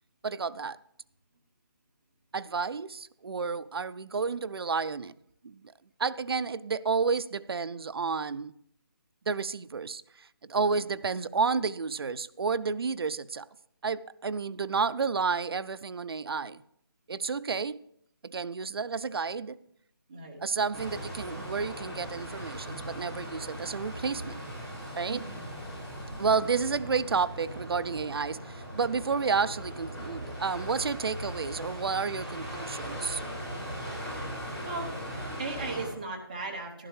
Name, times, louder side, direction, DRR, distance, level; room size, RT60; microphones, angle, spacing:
voice 1, 0.2-0.8 2.3-5.1 5.4-5.6 6.0-8.5 9.3-13.5 13.8-16.6 17.1-17.8 18.2-19.6 20.4-24.4 25.0-25.2 26.2-33.2, right 5 dB, 70° right, 0.4 m, -31 dB
voice 2, 20.1-20.4 25.1-25.5 33.8-34.1 34.6-35.0 35.4-36.9, right 3 dB, 20° right, 0.8 m, -37 dB
sound 1, 20.7-35.9, equal, 5° left, 4.7 m, -39 dB
12.0 x 11.5 x 3.2 m
hypercardioid pair, 175°, 13 cm